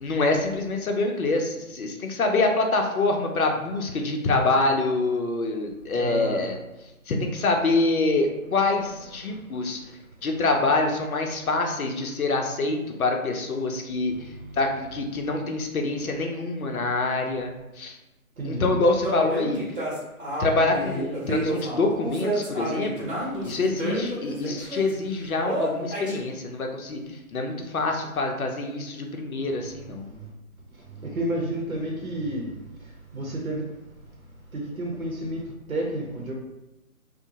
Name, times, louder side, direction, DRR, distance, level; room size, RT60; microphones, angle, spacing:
voice 1, 0.0-6.6 7.1-9.8 10.2-14.3 14.5-18.0 18.4-19.6 20.4-23.1 23.4-30.1, left 3 dB, 70° left, 3 dB, 0.6 m, -25 dB
voice 2, 5.9-6.5 9.2-9.4 18.4-18.7 30.1-30.3 31.0-32.5 33.1-33.7 34.5-36.3, right 1 dB, 70° right, -1 dB, 0.7 m, -31 dB
sound 1, 19.0-24.9 25.4-26.2, right 1 dB, 35° right, 0.9 m, -30 dB
2.6 x 2.1 x 2.9 m, 1.0 s
figure-of-eight pair, 160°, 44 cm